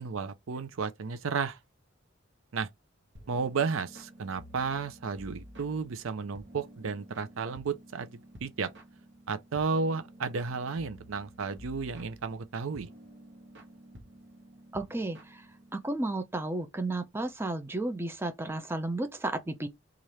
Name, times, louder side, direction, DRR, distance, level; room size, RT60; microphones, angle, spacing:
voice 1, 0.0-1.6 2.5-2.7 3.3-8.7 9.3-12.9, right 5 dB, 85° right, 0.5 m, -33 dB
sound 1, 3.2-16.0, right 1 dB, 60° right, 0.9 m, -52 dB
voice 2, 14.7-15.5 15.7-19.7, right 2 dB, 10° right, 0.4 m, -33 dB
3.2 x 2.5 x 4.1 m
head